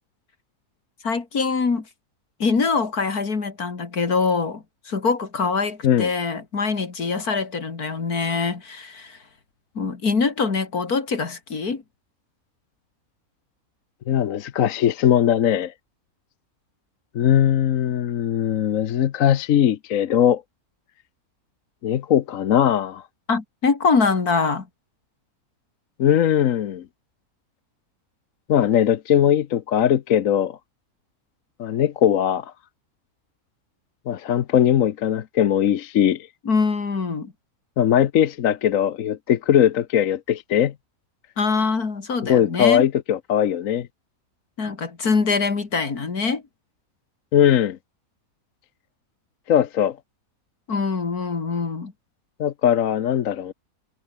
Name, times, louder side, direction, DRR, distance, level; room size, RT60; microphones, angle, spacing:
voice 1, 1.0-1.8 2.4-9.2 9.7-11.8 23.3-24.7 36.4-37.3 41.4-42.8 44.6-46.4 50.7-51.9, left 4 dB, 85° left, 3.2 m, -24 dB
voice 2, 14.1-15.7 17.1-20.4 21.8-23.0 26.0-26.8 28.5-30.6 31.6-32.5 34.1-36.3 37.8-40.7 42.2-43.9 47.3-47.8 49.5-50.0 52.4-53.5, left 10 dB, 65° left, 1.2 m, -20 dB
omnidirectional pair, 1.6 m